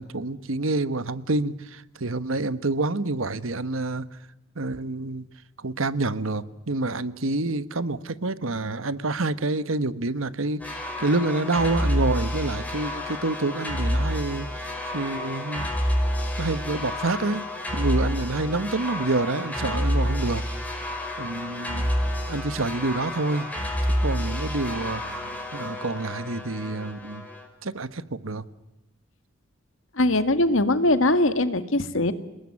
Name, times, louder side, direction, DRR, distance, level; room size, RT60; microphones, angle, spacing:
voice 1, 0.0-4.1 4.6-5.2 5.6-15.7 16.4-17.5 17.7-20.4 21.2-21.9 22.3-23.5 24.0-27.3 27.6-28.4, right 2 dB, 85° right, 14 dB, 1.2 m, -28 dB
sound 1, 10.6-27.5, equal, 10° left, 5.0 m, -29 dB
voice 2, 30.0-32.1, left 1 dB, 80° left, 10 dB, 2.0 m, -21 dB
29.5 x 19.5 x 9.8 m, 1.0 s
head